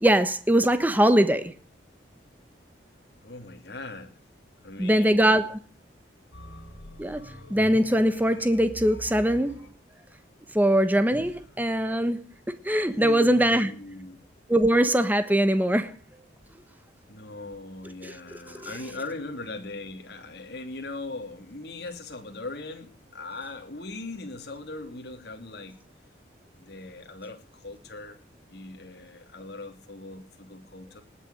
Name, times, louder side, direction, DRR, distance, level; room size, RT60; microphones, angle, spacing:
voice 1, 0.0-1.5 4.8-5.6 7.0-7.2 7.5-9.6 10.5-13.7 14.5-15.9 18.0-18.1 18.6-18.7, right 1 dB, 10° right, 1.2 m, -22 dB
voice 2, 3.2-4.2 4.6-5.3 12.9-14.2 17.1-25.8 26.6-28.2 28.5-31.0, left 2 dB, 55° left, 2.9 m, -39 dB
sound 1, 6.3-9.7, equal, 75° left, 4.9 m, -44 dB
19.5 x 7.0 x 9.6 m
head